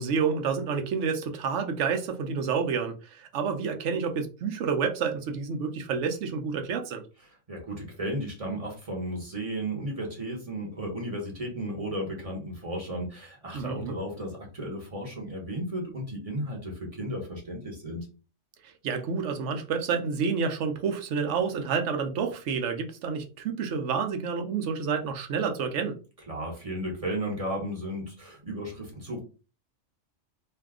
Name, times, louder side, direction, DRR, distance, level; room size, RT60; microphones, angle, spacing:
voice 1, 0.0-7.0 13.5-14.0 18.6-26.0, right 6 dB, 75° right, 6 dB, 0.9 m, -29 dB
voice 2, 7.5-18.1 26.3-29.2, right 1 dB, 30° right, -1 dB, 0.9 m, -34 dB
2.7 x 2.3 x 3.5 m, 0.34 s
omnidirectional pair, 1.3 m